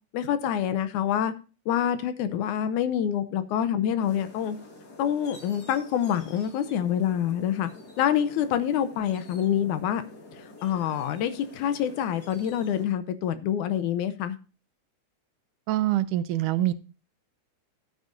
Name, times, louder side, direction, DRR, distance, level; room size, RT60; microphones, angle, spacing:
voice 1, 0.1-1.3 1.7-4.6 5.0-7.7 8.0-10.0 10.6-14.4, left 9 dB, 80° left, 11 dB, 2.2 m, -26 dB
sound 1, 4.0-12.8, left 2 dB, 35° left, 2.3 m, -48 dB
voice 2, 15.7-16.7, right 14 dB, 90° right, 13 dB, 2.2 m, -25 dB
12.5 x 9.3 x 2.6 m, 0.33 s
omnidirectional pair, 3.5 m